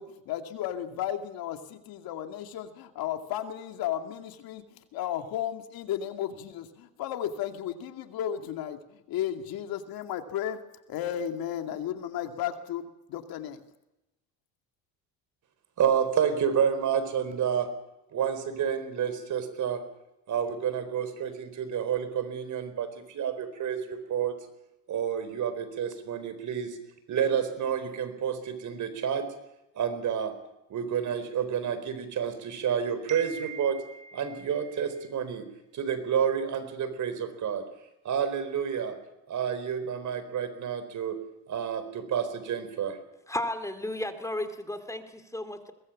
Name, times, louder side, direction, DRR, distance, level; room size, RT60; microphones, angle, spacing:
voice 1, 0.0-10.6 10.9-13.6, left 10 dB, 70° left, 6 dB, 2.3 m, -34 dB
voice 2, 15.8-17.7 18.1-19.8 20.3-24.4 24.9-26.8 27.1-29.3 29.7-30.3 30.7-35.5 35.7-37.6 38.0-39.0 39.3-41.2 41.5-43.0, right 8 dB, 50° right, 11 dB, 4.4 m, -29 dB
voice 3, 43.3-45.7, left 1 dB, 10° left, 9 dB, 2.4 m, -34 dB
22.5 x 20.0 x 7.3 m, 0.93 s
cardioid pair, 105°, 37 cm